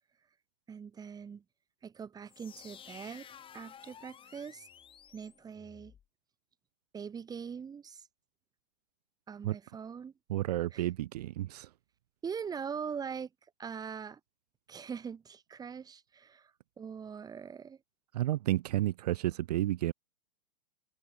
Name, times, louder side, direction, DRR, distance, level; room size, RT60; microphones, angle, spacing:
voice 1, 0.7-1.4 1.8-4.7 5.1-5.9 6.9-8.1 9.3-10.1 10.7-10.9 12.2-13.3 13.6-14.2 14.7-16.5 16.8-17.8, right 6 dB, 20° right, 2.0 m, -42 dB
sound 1, 2.3-6.1, left 9 dB, 25° left, 3.8 m, -53 dB
voice 2, 10.3-11.7 18.1-19.9, right 14 dB, 70° right, 0.8 m, -31 dB
hypercardioid pair, 110°, 21 cm